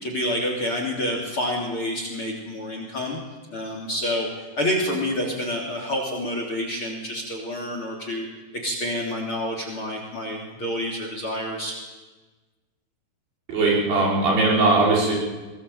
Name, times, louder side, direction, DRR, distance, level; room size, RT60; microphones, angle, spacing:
voice 1, 0.0-3.2 3.5-4.3 4.6-8.3 8.6-11.7, left 1 dB, 30° left, 1 dB, 3.4 m, -28 dB
voice 2, 13.5-15.1, right 3 dB, 65° right, -4 dB, 7.7 m, -19 dB
22.0 x 19.5 x 8.0 m, 1.2 s
omnidirectional pair, 5.1 m